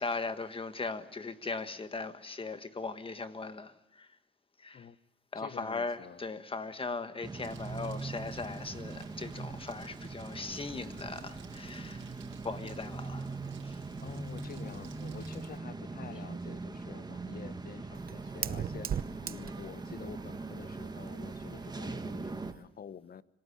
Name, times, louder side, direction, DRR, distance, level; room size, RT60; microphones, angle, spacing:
voice 1, 0.0-4.2 4.6-4.9 5.3-12.1 12.4-13.8, left 3 dB, 25° left, 1.5 m, -39 dB
voice 2, 5.4-6.2 14.0-18.9 19.2-23.2, left 8 dB, 50° left, 1.1 m, -48 dB
sound 1, 7.2-22.5, right 3 dB, 20° right, 1.9 m, -41 dB
Crumpling crinkling, 7.4-15.6, right 7 dB, 80° right, 5.0 m, -56 dB
Fire, 16.5-22.7, right 8 dB, 50° right, 0.9 m, -42 dB
26.5 x 18.5 x 10.0 m
cardioid pair, 90°, 20 cm